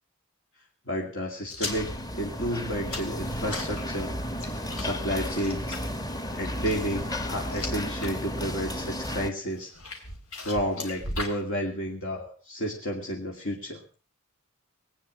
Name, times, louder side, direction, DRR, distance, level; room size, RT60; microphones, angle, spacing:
voice 1, 0.9-4.2 4.8-5.8 6.3-9.7 10.4-13.8, equal, 65° left, -1 dB, 2.4 m, -31 dB
sound 1, 1.4-8.1 8.5-9.0 9.6-11.4, left 2 dB, 80° left, 3.4 m, -38 dB
sound 2, 1.6-9.3, equal, 20° left, 1.1 m, -33 dB
21.5 x 9.2 x 6.3 m, 0.39 s
head